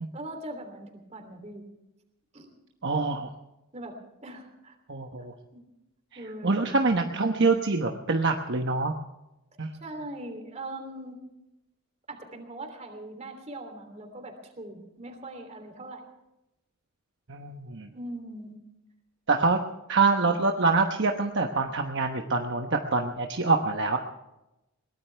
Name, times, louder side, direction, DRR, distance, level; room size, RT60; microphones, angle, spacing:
voice 1, 0.1-1.7 2.3-2.5 3.7-4.7 5.5-5.6 6.1-6.7 9.8-11.2 12.1-16.0 17.9-18.6, right 1 dB, 30° right, 5 dB, 3.1 m, -41 dB
voice 2, 2.8-3.3 4.9-5.3 6.1-8.9 9.6-9.7 17.3-17.9 19.3-19.6 19.9-24.0, right 3 dB, 55° right, 3 dB, 1.1 m, -25 dB
22.0 x 18.5 x 3.4 m, 0.93 s
head